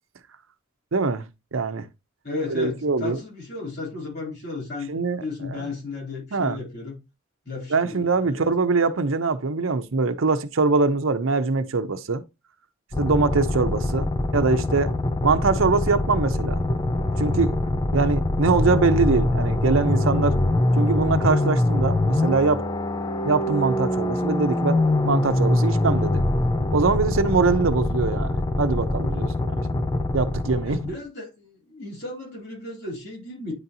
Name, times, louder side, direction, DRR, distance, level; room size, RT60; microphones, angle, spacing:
voice 1, 0.9-1.9 2.5-3.2 4.9-5.7 6.3-6.6 7.7-12.2 13.0-14.9 15.2-16.6 17.2-17.5 17.9-20.4 20.8-22.6 23.2-26.2 26.7-29.8 30.1-30.8, right 3 dB, 85° right, 0.7 m, -23 dB
voice 2, 2.2-4.9 5.2-7.0 7.4-8.4 30.6-33.5, left 3 dB, 55° left, 3.3 m, -34 dB
sound 1, 12.9-31.0, left 2 dB, 20° left, 0.4 m, -24 dB
9.8 x 4.0 x 2.8 m
head